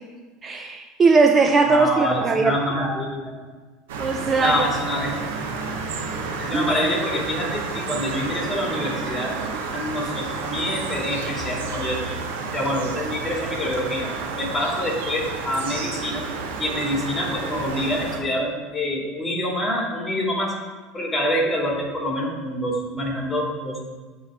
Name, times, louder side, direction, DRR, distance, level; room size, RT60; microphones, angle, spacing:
voice 1, 0.4-2.6 4.0-4.7 6.5-6.9, right 4 dB, 30° right, 5 dB, 0.4 m, -19 dB
voice 2, 1.7-3.1 4.4-5.3 6.4-9.4 9.7-12.0 12.5-14.1 14.3-16.2 16.6-20.5 20.9-23.8, left 1 dB, 15° left, -1 dB, 2.0 m, -26 dB
sound 1, 3.9-18.2, right 4 dB, 85° right, 0.7 m, -30 dB
7.8 x 3.2 x 5.8 m, 1.3 s
supercardioid pair, 100°, 0 cm